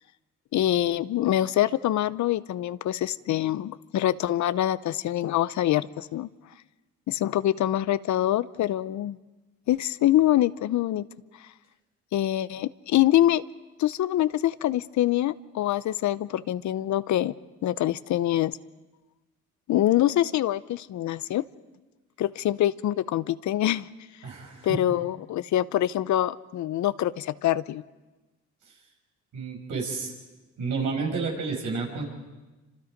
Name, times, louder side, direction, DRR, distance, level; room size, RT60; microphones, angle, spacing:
voice 1, 0.5-6.3 7.1-9.2 9.7-11.1 12.1-13.4 13.8-17.3 17.6-18.6 19.7-21.4 22.2-23.9 24.6-27.8, left 13 dB, 70° left, 17 dB, 0.7 m, -25 dB
voice 2, 24.2-24.8 29.3-30.1 30.6-32.0, right 4 dB, 80° right, 1 dB, 5.9 m, -30 dB
28.0 x 26.0 x 5.2 m, 1.1 s
cardioid pair, 90°, 30 cm